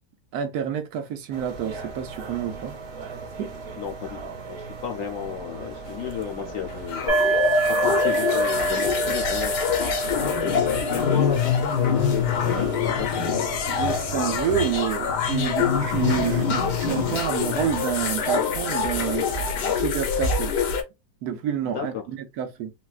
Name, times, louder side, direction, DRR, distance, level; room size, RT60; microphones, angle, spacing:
voice 1, 0.3-2.7 3.4-3.5 9.1-9.2 13.7-19.3 19.5-20.5 21.2-22.7, right 9 dB, 75° right, 1.1 m, -28 dB
sound 1, 1.3-19.6, right 4 dB, 55° right, 1.2 m, -38 dB
voice 2, 3.8-4.2 4.5-7.3 7.7-10.5 10.9-13.3 21.7-22.0, left 9 dB, 65° left, 0.8 m, -33 dB
sound 2, 5.9-20.8, left 7 dB, 85° left, 1.3 m, -25 dB
sound 3, 7.1-14.6, right 3 dB, 30° right, 1.0 m, -28 dB
4.0 x 2.2 x 2.3 m
omnidirectional pair, 1.8 m